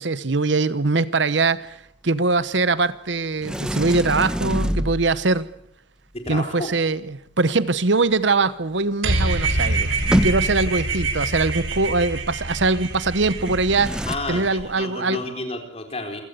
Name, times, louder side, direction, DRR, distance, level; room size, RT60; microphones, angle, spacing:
voice 1, 0.0-5.5 6.3-15.2, right 3 dB, 65° right, 16 dB, 1.0 m, -22 dB
Sliding door, 3.4-5.4 8.9-9.0 9.2-10.8 13.4-14.2, equal, 5° right, 1.0 m, -26 dB
voice 2, 6.1-6.7 14.1-16.2, left 2 dB, 30° left, 5 dB, 4.4 m, -31 dB
sound 1, 9.0-14.6, right 2 dB, 85° right, 3.5 m, -25 dB
27.5 x 17.0 x 8.2 m, 0.76 s
head